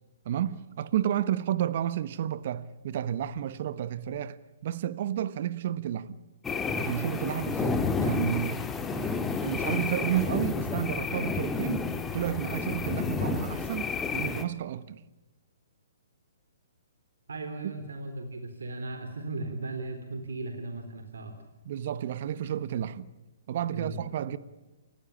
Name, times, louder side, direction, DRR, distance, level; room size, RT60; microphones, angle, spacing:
voice 1, 0.2-6.2 6.8-8.6 8.9-11.8 12.1-15.0 21.6-23.1 23.5-24.4, right 10 dB, 50° right, 1.2 m, -31 dB
sound 1, 6.4-14.4, left 5 dB, 10° left, 1.9 m, -31 dB
voice 2, 17.3-21.3 23.7-24.0, right 2 dB, 75° right, 3.7 m, -37 dB
29.0 x 15.5 x 8.5 m
hypercardioid pair, 130°, 0 cm